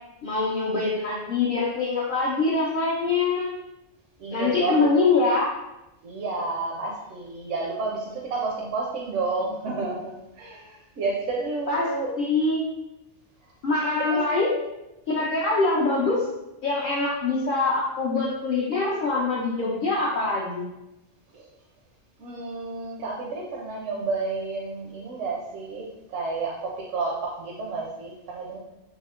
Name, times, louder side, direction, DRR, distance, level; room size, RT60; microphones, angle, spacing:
voice 1, 0.2-3.5 4.3-5.5 11.7-11.9 12.2-12.6 13.6-14.6 15.1-16.3 16.6-20.7, left 3 dB, 60° left, -4 dB, 0.5 m, -24 dB
voice 2, 4.2-4.9 6.0-12.1 14.0-14.2 21.3-21.5 22.2-28.6, right 3 dB, 75° right, -2 dB, 0.9 m, -30 dB
3.5 x 2.7 x 2.3 m, 0.93 s
omnidirectional pair, 1.3 m